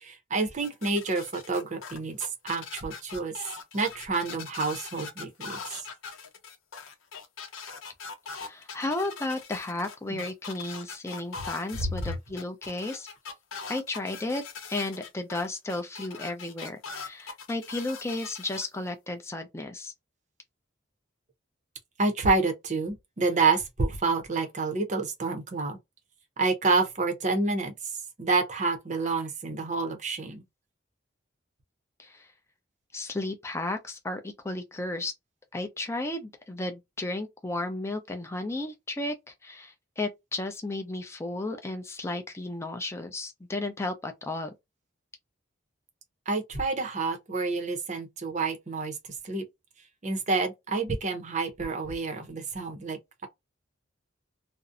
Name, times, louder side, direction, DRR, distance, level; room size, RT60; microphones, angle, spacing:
voice 1, 0.0-3.3 3.7-5.8 10.1-10.2 22.0-25.8 26.4-27.7 28.2-30.4 46.3-48.9 49.2-49.5 50.0-53.3, right 3 dB, 35° right, 0.6 m, -28 dB
sound 1, 0.6-18.6, left 5 dB, 85° left, 0.6 m, -41 dB
voice 2, 8.3-13.1 13.7-14.4 14.7-19.9 32.0-32.3 32.9-35.1 35.5-39.1 39.4-44.5, left 2 dB, 15° left, 0.4 m, -33 dB
2.5 x 2.0 x 2.4 m
head